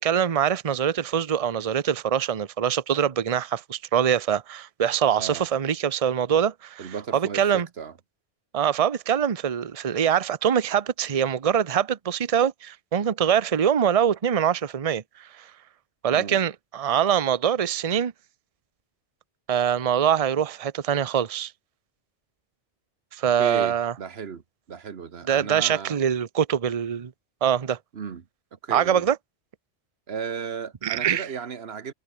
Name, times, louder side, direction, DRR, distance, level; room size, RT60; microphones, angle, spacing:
voice 1, 0.0-7.7 8.5-15.5 16.0-18.1 19.5-21.5 23.1-23.9 25.3-27.1 27.4-27.8 28.7-29.2 30.8-31.3, right 8 dB, 35° right, 0.8 m, -24 dB
voice 2, 6.8-7.9 16.1-16.5 23.4-24.4 24.7-26.0 27.9-29.1 30.1-31.9, right 6 dB, 60° right, 1.5 m, -35 dB
omnidirectional pair, 1.2 m